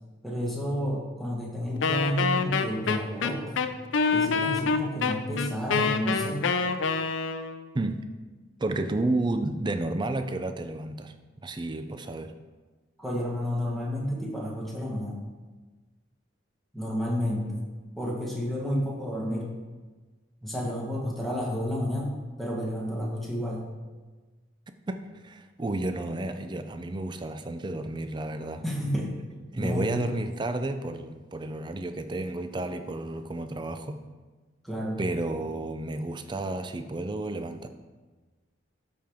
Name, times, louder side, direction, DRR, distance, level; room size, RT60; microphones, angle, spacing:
voice 1, 0.2-3.7 4.1-6.4 13.0-15.2 16.7-17.6 18.0-19.5 20.4-22.1 22.4-23.6 28.6-29.1 29.6-29.9 34.6-35.0, equal, ahead, -3 dB, 1.3 m, -30 dB
Wind instrument woodwind instrument, 1.8-7.6, left 5 dB, 70° left, 0.5 m, -26 dB
voice 2, 8.6-11.1 11.4-12.3 25.2-28.6 28.9-29.0 29.5-34.0 35.0-37.7, right 2 dB, 25° right, 8 dB, 0.4 m, -31 dB
12.5 x 4.5 x 3.6 m, 1.3 s
head